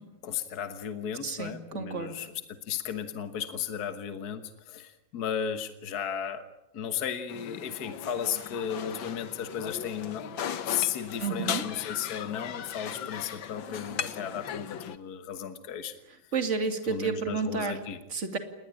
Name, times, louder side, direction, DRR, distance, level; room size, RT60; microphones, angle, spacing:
voice 1, 0.2-6.4 6.7-10.3 10.6-16.0 16.8-18.0, left 8 dB, 55° left, 9 dB, 1.7 m, -35 dB
voice 2, 1.2-2.2 11.2-11.6 16.3-17.8 18.1-18.4, right 5 dB, 40° right, 7 dB, 2.7 m, -31 dB
sound 1, 7.3-15.0, left 8 dB, 90° left, 1.9 m, -37 dB
28.5 x 21.0 x 8.8 m, 0.92 s
omnidirectional pair, 2.0 m